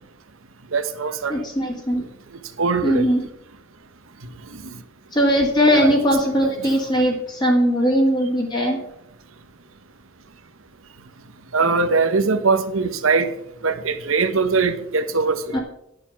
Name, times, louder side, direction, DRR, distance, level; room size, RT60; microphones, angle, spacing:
voice 1, 0.7-1.4 2.6-3.1 5.7-5.9 6.4-6.5 11.5-13.3 13.6-15.6, right 4 dB, 85° right, 1.1 m, -21 dB
voice 2, 1.3-2.0 2.8-3.2 5.1-8.8 15.5-15.6, equal, 20° left, 1.8 m, -19 dB
11.0 x 7.0 x 5.9 m
head